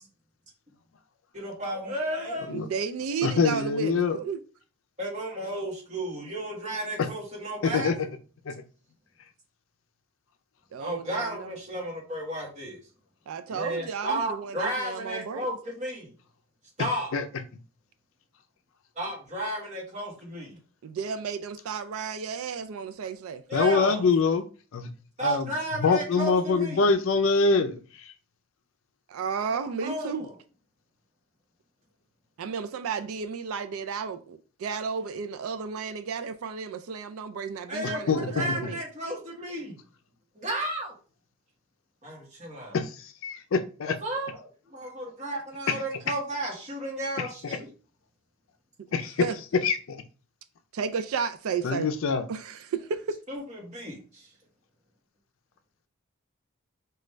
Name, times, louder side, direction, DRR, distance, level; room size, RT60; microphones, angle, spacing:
voice 1, 1.3-2.5 5.0-8.0 10.8-12.8 13.5-16.1 16.8-17.1 19.0-20.6 23.5-24.1 25.2-26.8 29.5-30.3 37.7-39.8 40.3-40.9 42.0-42.8 43.8-47.7 53.3-54.3, right 1 dB, 35° right, 1.2 m, -33 dB
voice 2, 2.5-4.4 10.7-11.6 13.3-15.5 20.8-23.4 29.1-30.3 32.4-38.8 49.2-49.3 50.7-51.9 52.3-53.2, right 6 dB, 80° right, 0.4 m, -33 dB
voice 3, 3.2-4.2 7.0-7.1 7.6-7.9 8.5-8.6 17.1-17.2 23.5-24.4 24.7-24.9 25.2-25.5 25.8-28.1 37.8-38.4 42.7-44.0 48.9-49.3 49.6-50.0 51.6-52.2, left 4 dB, 65° left, 0.4 m, -24 dB
5.0 x 2.3 x 3.1 m
head